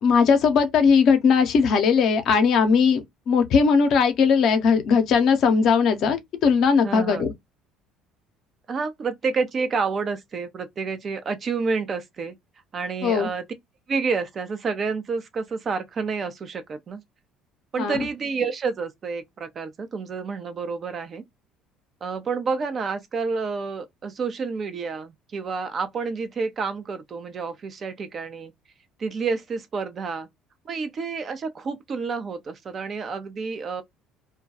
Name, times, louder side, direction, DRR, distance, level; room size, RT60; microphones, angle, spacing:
voice 1, 0.0-7.3 13.0-13.3 17.8-18.0, left 5 dB, 60° left, 0.6 m, -19 dB
voice 2, 6.8-7.3 8.7-12.4 12.7-13.5 13.9-17.0 17.7-21.2 22.0-28.5 29.0-30.3 30.6-33.8, right 5 dB, 45° right, 0.6 m, -29 dB
2.2 x 2.2 x 2.6 m
hypercardioid pair, 60°, 0 cm